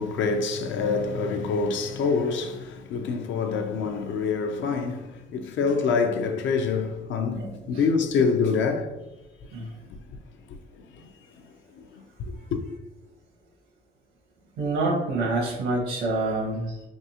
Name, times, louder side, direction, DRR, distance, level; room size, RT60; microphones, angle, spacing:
voice 1, 0.0-8.9 12.2-12.6, left 5 dB, 70° left, 0.5 m, -26 dB
voice 2, 7.3-7.8 9.5-9.7 14.6-16.8, right 2 dB, 90° right, 1.2 m, -27 dB
3.6 x 2.7 x 2.8 m
cardioid pair, 90°, 20 cm